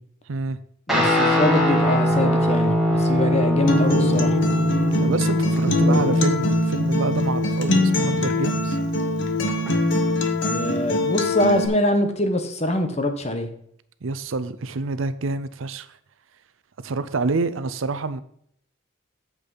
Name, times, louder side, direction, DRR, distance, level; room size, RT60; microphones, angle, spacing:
voice 1, 0.3-0.6 5.0-8.8 14.0-15.9 16.8-18.2, right 3 dB, 85° right, 0.6 m, -27 dB
voice 2, 0.9-4.4 5.8-6.0 10.5-13.5, left 1 dB, 30° left, 1.1 m, -24 dB
Guitar, 0.9-9.7, equal, ahead, 2.1 m, -22 dB
Acoustic guitar, 3.7-11.7, left 2 dB, 65° left, 1.2 m, -23 dB
8.4 x 7.4 x 4.0 m
head